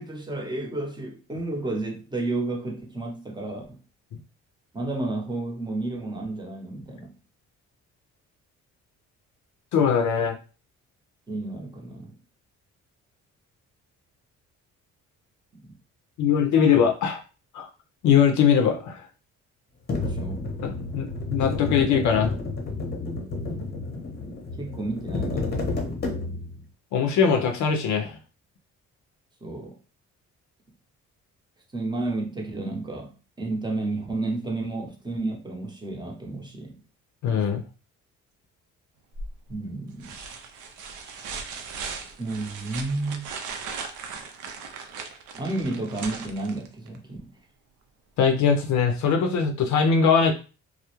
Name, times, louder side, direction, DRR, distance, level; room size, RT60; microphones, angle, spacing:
voice 1, 0.0-3.8 4.7-7.1 11.3-12.1 20.0-20.4 23.4-23.6 24.6-25.8 29.4-29.8 31.7-36.8 39.5-40.2 42.2-43.3 45.3-47.3, right 2 dB, 15° right, 1 dB, 0.7 m, -31 dB
voice 2, 9.7-10.4 16.2-17.2 17.5-17.7 18.0-19.0 20.6-22.3 26.9-28.2 37.2-37.6 48.2-50.3, left 6 dB, 75° left, 4 dB, 0.5 m, -21 dB
sound 1, 19.9-26.6, left 3 dB, 35° left, 0.7 m, -31 dB
sound 2, 39.1-39.5 40.0-47.0 48.7-48.8, right 5 dB, 80° right, 0.5 m, -38 dB
2.3 x 2.0 x 2.9 m, 0.34 s
cardioid pair, 90°, 30 cm